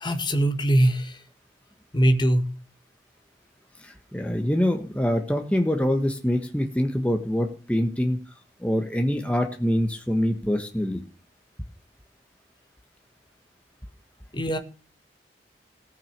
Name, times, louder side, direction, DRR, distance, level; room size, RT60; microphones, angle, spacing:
voice 1, 0.0-1.2 1.9-2.5 14.3-14.6, right 1 dB, 25° left, 7 dB, 1.5 m, -21 dB
voice 2, 3.8-8.2 8.6-11.0, equal, 5° left, 4 dB, 1.2 m, -25 dB
17.5 x 6.1 x 6.6 m, 0.38 s
head